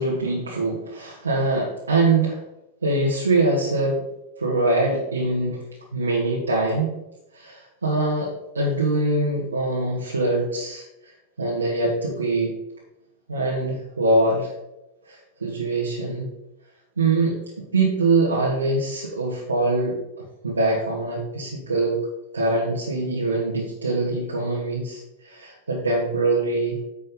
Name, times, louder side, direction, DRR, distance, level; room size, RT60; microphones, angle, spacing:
voice 1, 0.0-2.4 2.8-4.0 4.4-5.6 5.9-7.0 7.3-10.8 11.4-12.5 13.3-14.5 15.1-16.3 17.0-20.0 20.4-22.0 22.3-26.8, right 2 dB, 75° right, -4 dB, 1.7 m, -23 dB
9.9 x 7.4 x 3.9 m, 0.92 s
figure-of-eight pair, 90°, 0 cm